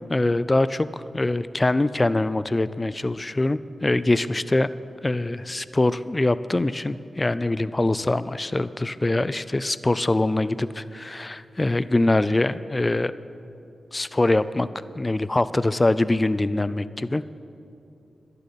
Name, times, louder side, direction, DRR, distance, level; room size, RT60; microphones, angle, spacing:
voice 1, 0.1-4.7 5.0-13.1 13.9-14.7 15.0-17.2, left 2 dB, 30° left, 15 dB, 0.4 m, -23 dB
11.5 x 6.8 x 8.3 m, 2.7 s
cardioid pair, 50°, 0 cm